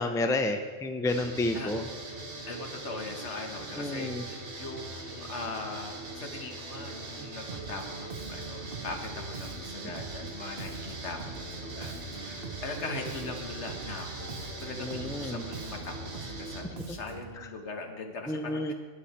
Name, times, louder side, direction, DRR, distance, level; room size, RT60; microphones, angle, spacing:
voice 1, 0.0-1.8 3.8-4.2 14.8-15.4 18.3-18.7, left 2 dB, 5° left, 7 dB, 0.4 m, -30 dB
sound 1, 1.1-16.6, right 2 dB, 80° right, 1.9 m, -41 dB
voice 2, 2.5-18.7, left 3 dB, 90° left, 3 dB, 1.6 m, -40 dB
Bass guitar, 7.5-17.4, right 5 dB, 55° right, 1.0 m, -44 dB
11.5 x 10.0 x 4.3 m, 1.5 s
omnidirectional pair, 1.1 m